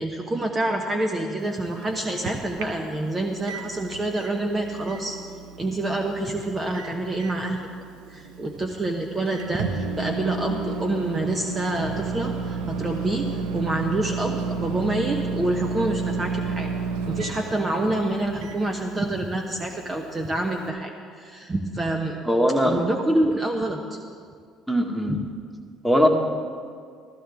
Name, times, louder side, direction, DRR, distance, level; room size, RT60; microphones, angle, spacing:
voice 1, 0.0-5.2 5.6-7.6 8.1-16.7 17.1-22.2 22.6-24.0 25.1-25.2, right 2 dB, 30° right, 2 dB, 1.1 m, -27 dB
Microwave oven, 1.4-20.7, right 4 dB, 80° right, 0.8 m, -33 dB
voice 2, 22.3-22.8 24.7-25.2 25.8-26.1, equal, ahead, 1 dB, 1.8 m, -20 dB
14.5 x 14.0 x 3.6 m, 2.1 s
hypercardioid pair, 60°, 0 cm